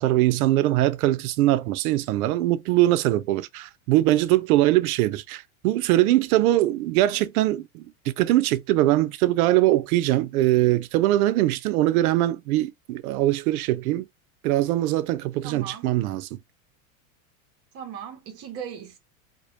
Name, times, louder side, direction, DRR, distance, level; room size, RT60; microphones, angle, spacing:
voice 1, 0.0-14.1 14.4-16.4, right 15 dB, 85° right, 0.5 m, -22 dB
voice 2, 15.4-15.9 17.7-19.0, right 8 dB, 35° right, 0.6 m, -38 dB
2.1 x 2.0 x 2.9 m
supercardioid pair, 150°, 42 cm